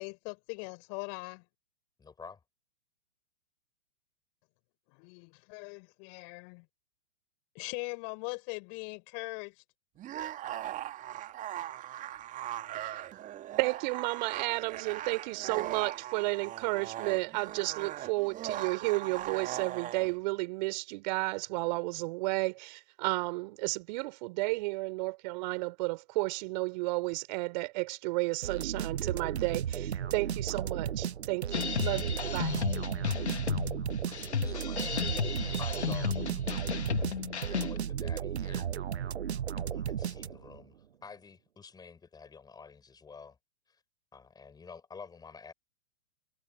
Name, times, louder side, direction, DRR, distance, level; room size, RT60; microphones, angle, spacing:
voice 1, 0.0-1.4 4.9-6.7 7.6-9.5, left 40 dB or more, 40° left, 5.2 m, -41 dB
voice 2, 2.0-2.4 34.1-35.2 35.6-36.2 37.5-38.7 39.6-43.4 44.1-45.5, left 5 dB, 10° left, 5.4 m, -49 dB
sound 1, 10.0-20.1, right 12 dB, 25° right, 2.0 m, -39 dB
voice 3, 13.6-32.6, right 24 dB, 40° right, 4.3 m, -32 dB
sound 2, 28.4-40.6, right 9 dB, 75° right, 0.8 m, -35 dB
sound 3, 31.5-37.8, left 6 dB, 80° left, 1.3 m, -33 dB
figure-of-eight pair, 115°, 33 cm